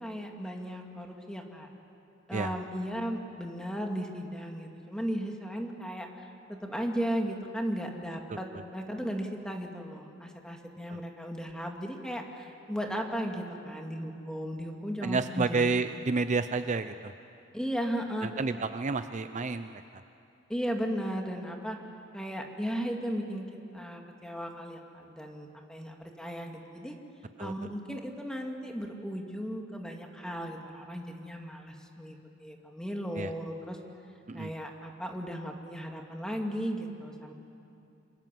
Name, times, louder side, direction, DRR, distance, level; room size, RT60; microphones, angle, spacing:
voice 1, 0.0-1.7 2.3-15.9 17.5-18.3 20.5-21.8 22.1-27.0 27.4-33.8 34.3-37.3, equal, 5° left, 2 dB, 2.4 m, -36 dB
voice 2, 15.0-17.1 18.2-20.0 27.4-27.5 33.2-33.3 34.3-34.5, right 4 dB, 40° right, 10 dB, 0.6 m, -30 dB
27.0 x 26.0 x 7.7 m, 2.7 s
head